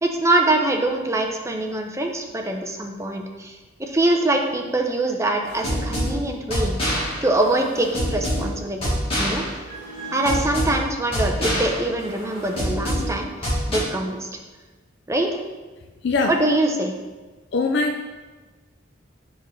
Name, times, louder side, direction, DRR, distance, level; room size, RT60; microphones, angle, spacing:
voice 1, 0.0-8.9 9.2-9.4 10.1-14.4 15.1-15.4 16.3-16.9, right 2 dB, 15° right, 2 dB, 0.6 m, -24 dB
sound 1, 5.5-13.8, equal, 30° left, 2.1 m, -26 dB
voice 2, 17.5-18.0, left 3 dB, 65° left, 4 dB, 0.5 m, -21 dB
7.1 x 5.2 x 3.2 m, 1.3 s
head